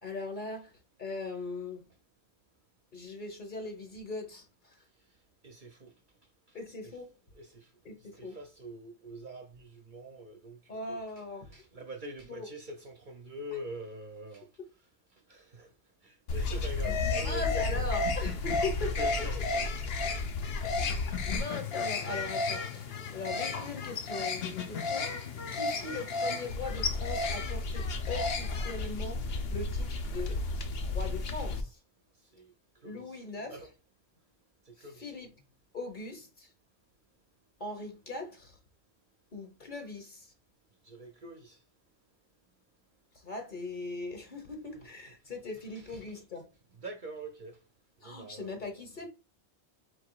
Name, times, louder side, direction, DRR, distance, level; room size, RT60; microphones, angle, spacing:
voice 1, 0.0-0.7 1.0-1.9 2.9-4.4 6.5-7.1 7.8-8.4 10.7-11.5 12.3-12.5 16.4-19.0 19.3-19.4 21.2-22.9 23.1-30.4 30.8-31.8 32.8-33.7 34.8-35.3 35.7-36.5 37.6-38.6 39.3-40.3 43.2-46.5 48.0-49.1, left 3 dB, 45° left, 1.4 m, -40 dB
voice 2, 5.4-5.9 7.3-7.7 8.1-10.6 11.5-14.5 15.3-15.7 16.0-17.9 19.0-20.0 20.3-20.9 32.3-32.5 32.8-33.2 33.5-33.7 34.7-35.1 40.8-41.6 44.7-44.9 45.7-46.0 46.8-47.6 48.0-48.6, right 1 dB, 50° right, 0.7 m, -45 dB
sound 1, 16.3-31.6, left 3 dB, 65° left, 1.0 m, -32 dB
4.7 x 4.1 x 2.3 m
omnidirectional pair, 1.2 m